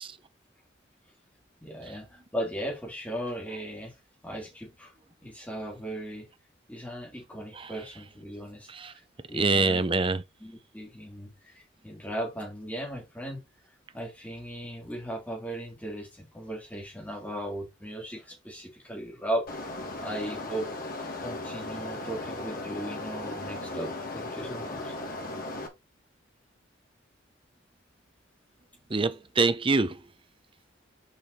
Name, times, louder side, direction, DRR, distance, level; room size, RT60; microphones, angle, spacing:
voice 1, 1.6-3.9 4.2-4.9 5.2-6.3 6.7-9.0 9.3-9.8 10.4-13.4 13.9-20.7 21.2-24.9, right 1 dB, 10° left, 3.0 m, -37 dB
voice 2, 9.3-10.2 28.9-30.0, right 3 dB, 25° right, 0.6 m, -25 dB
sound 1, 19.5-25.7, left 2 dB, 45° left, 2.1 m, -37 dB
6.8 x 5.1 x 4.2 m
head